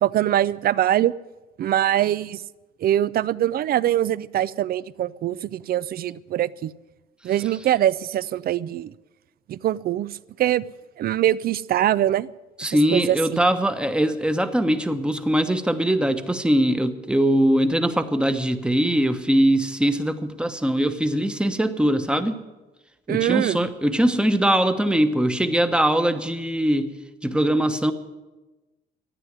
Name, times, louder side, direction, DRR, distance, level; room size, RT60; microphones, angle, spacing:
voice 1, 0.0-1.1 1.6-2.4 2.8-6.7 7.2-8.9 9.5-10.6 11.0-12.3 12.7-13.4 23.1-23.6, right 12 dB, 50° right, 19 dB, 0.5 m, -23 dB
voice 2, 12.6-22.4 23.1-26.9 27.2-27.9, right 1 dB, 5° right, 9 dB, 1.0 m, -21 dB
13.0 x 9.5 x 9.5 m, 1.1 s
cardioid pair, 115°, 19 cm